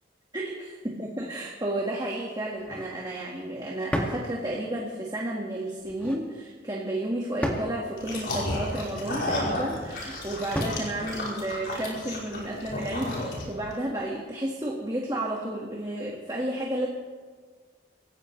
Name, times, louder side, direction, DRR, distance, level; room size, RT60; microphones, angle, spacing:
voice 1, 0.3-16.9, right 1 dB, 20° right, -2 dB, 1.7 m, -32 dB
sound 1, 2.6-3.0 3.9-4.3 5.8-6.2 7.4-7.8 9.2-9.6 10.5-10.9, equal, 10° left, 2.0 m, -31 dB
sound 2, 8.0-13.7, left 1 dB, 60° left, 5.3 m, -32 dB
26.5 x 15.5 x 3.2 m, 1.5 s
head